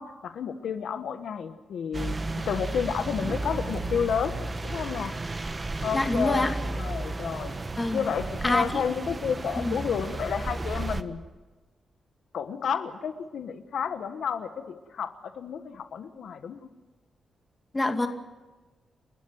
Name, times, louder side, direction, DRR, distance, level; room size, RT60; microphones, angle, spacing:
voice 1, 0.0-2.1 2.4-4.4 4.6-5.2 5.8-7.6 7.9-11.2 12.3-16.7, left 7 dB, 80° left, 9 dB, 1.4 m, -31 dB
sound 1, 1.9-11.0, right 2 dB, 30° right, 1.2 m, -33 dB
voice 2, 5.9-6.5 7.8-8.0 8.4-8.8 9.6-9.8 17.7-18.1, left 2 dB, 20° left, 5 dB, 2.5 m, -25 dB
30.0 x 12.5 x 9.5 m, 1.2 s
cardioid pair, 100°, 0 cm